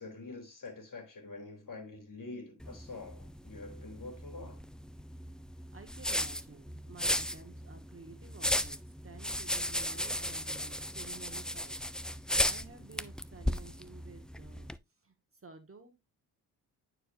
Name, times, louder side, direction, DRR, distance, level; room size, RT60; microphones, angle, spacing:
voice 1, 0.0-4.6, left 3 dB, 45° left, 3.3 m, -46 dB
sound 1, 2.6-14.8, left 1 dB, ahead, 0.4 m, -36 dB
voice 2, 5.7-11.9 12.4-14.7 15.0-15.1 15.4-16.0, right 4 dB, 30° right, 1.7 m, -52 dB
9.9 x 4.8 x 2.7 m
supercardioid pair, 50°, 45 cm